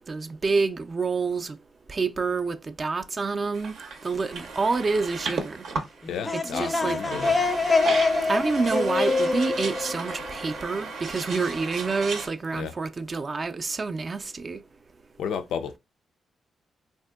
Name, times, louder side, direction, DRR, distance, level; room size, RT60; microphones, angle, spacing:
voice 1, 0.1-1.6 1.9-3.7 4.0-5.6 6.3-7.0 8.3-14.6, right 4 dB, 40° right, 0.4 m, -28 dB
sound 1, 3.5-12.3, right 4 dB, 75° right, 0.6 m, -35 dB
sound 2, 6.0-10.8, left 3 dB, 20° left, 0.5 m, -25 dB
voice 2, 6.1-7.4 12.5-12.7 15.2-15.8, left 7 dB, 85° left, 0.4 m, -32 dB
3.5 x 2.6 x 2.3 m
cardioid pair, 85°, 0 cm